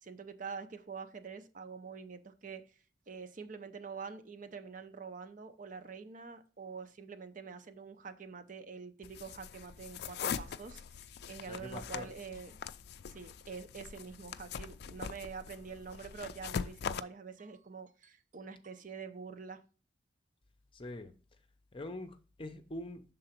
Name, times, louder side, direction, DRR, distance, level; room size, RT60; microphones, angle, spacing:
voice 1, 0.0-2.8 3.1-12.6 13.1-19.6, right 5 dB, 45° right, 0.6 m, -46 dB
sound 1, 9.0-17.0, left 7 dB, 60° left, 0.4 m, -42 dB
voice 2, 11.5-12.1 20.7-21.1 21.7-23.0, left 1 dB, 30° left, 0.7 m, -44 dB
6.6 x 3.8 x 5.9 m
head